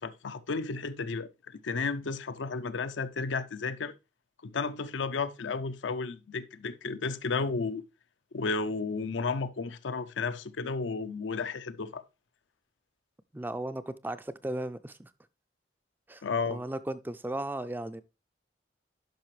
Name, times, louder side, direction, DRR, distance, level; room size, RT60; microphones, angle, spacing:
voice 1, 0.0-3.9 4.4-7.8 8.3-12.0 16.2-16.6, left 4 dB, 85° left, 0.6 m, -33 dB
voice 2, 13.3-15.1 16.1-16.2 16.5-18.0, right 1 dB, 10° right, 0.3 m, -36 dB
10.5 x 5.7 x 3.1 m
head